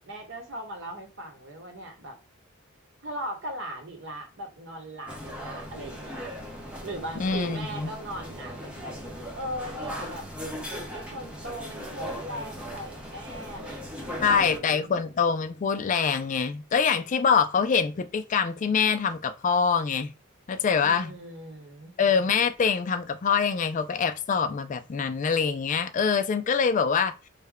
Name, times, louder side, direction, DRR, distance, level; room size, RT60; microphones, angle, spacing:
voice 1, 0.0-2.2 3.0-6.3 6.8-8.9 9.4-10.3 10.9-14.9 20.8-21.9, right 1 dB, 60° right, 1.0 m, -39 dB
sound 1, 5.1-14.6, equal, 5° right, 0.8 m, -38 dB
voice 2, 7.2-7.9 14.2-20.1 20.5-21.1 22.0-27.1, left 6 dB, 40° left, 0.3 m, -24 dB
3.2 x 2.2 x 3.5 m
head